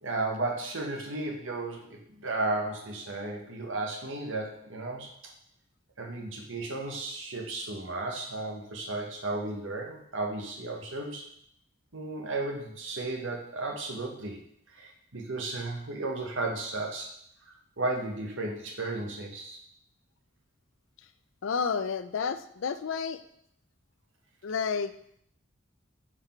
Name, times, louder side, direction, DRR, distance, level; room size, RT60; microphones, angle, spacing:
voice 1, 0.0-5.1 6.0-11.2 11.9-14.4 14.8-17.1 17.8-19.6, right 2 dB, 75° right, 1 dB, 1.2 m, -34 dB
voice 2, 21.4-23.2 24.4-24.9, left 6 dB, 70° left, 11 dB, 0.4 m, -30 dB
5.8 x 4.8 x 4.4 m, 0.69 s
head